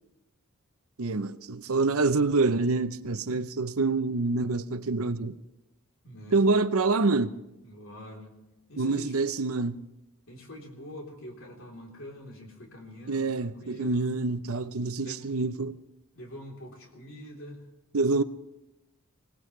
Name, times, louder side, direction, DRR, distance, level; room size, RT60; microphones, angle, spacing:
voice 1, 1.0-5.4 6.3-7.3 8.8-9.8 13.1-15.7 17.9-18.2, right 3 dB, 75° right, 0.7 m, -26 dB
voice 2, 6.0-6.5 7.6-8.3 8.7-9.2 10.3-14.1 15.0-15.3 16.1-17.6, equal, 60° left, 3.6 m, -44 dB
25.0 x 18.0 x 3.3 m
head